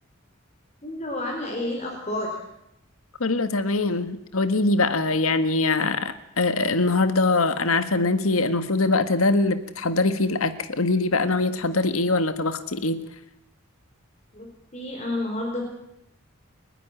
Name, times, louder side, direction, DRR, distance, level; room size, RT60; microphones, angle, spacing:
voice 1, 0.8-2.4 14.3-15.6, left 1 dB, 30° left, 0 dB, 4.5 m, -30 dB
voice 2, 3.2-13.0, left 3 dB, 90° left, 10 dB, 1.7 m, -23 dB
29.5 x 11.0 x 10.0 m, 0.81 s
head